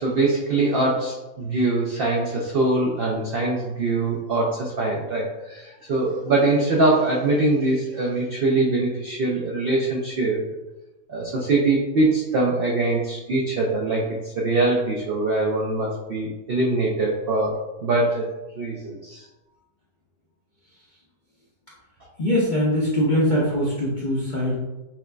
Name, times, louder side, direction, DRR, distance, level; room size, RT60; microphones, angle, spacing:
voice 1, 0.0-10.4 11.1-18.3 18.6-19.2, right 2 dB, 85° right, -2 dB, 0.5 m, -23 dB
voice 2, 22.2-24.5, equal, 55° left, -6 dB, 0.5 m, -22 dB
5.8 x 2.4 x 2.2 m, 1.1 s
omnidirectional pair, 1.6 m